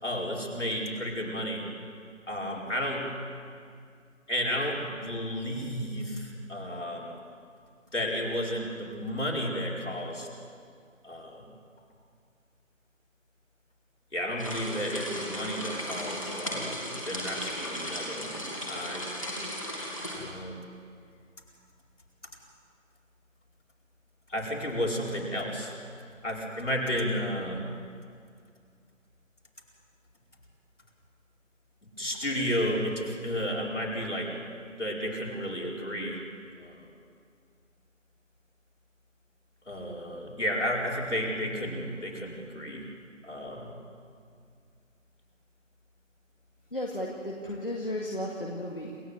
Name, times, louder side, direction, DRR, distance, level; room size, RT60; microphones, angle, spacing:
voice 1, 0.0-1.6 2.3-3.1 4.3-7.2 7.9-10.3 11.0-11.4 14.1-19.1 20.1-20.6 24.3-25.8 26.2-27.6 32.0-34.3 34.8-36.2 36.6-36.9 39.7-42.9 43.2-43.7, equal, 65° left, -2 dB, 4.7 m, -32 dB
sound 1, 14.4-20.2, equal, 25° left, 2.8 m, -36 dB
voice 2, 46.7-49.0, left 1 dB, 45° left, -2 dB, 2.1 m, -34 dB
28.0 x 14.5 x 7.9 m, 2.2 s
figure-of-eight pair, 180°, 39 cm